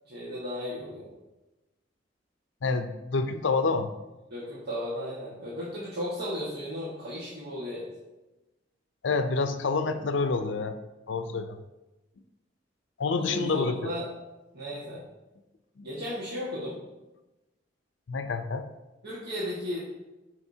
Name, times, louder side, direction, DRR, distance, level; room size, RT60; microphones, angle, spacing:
voice 1, 0.1-1.1 4.3-7.8 13.1-14.1 14.5-15.0 15.8-16.7 19.0-19.8, left 1 dB, 55° right, -8 dB, 1.7 m, -35 dB
voice 2, 2.6-3.9 9.0-10.8 11.1-11.6 13.0-13.9 15.8-15.9 18.1-18.7, left 4 dB, 75° left, 9 dB, 0.5 m, -28 dB
13.5 x 5.0 x 2.8 m, 1.1 s
head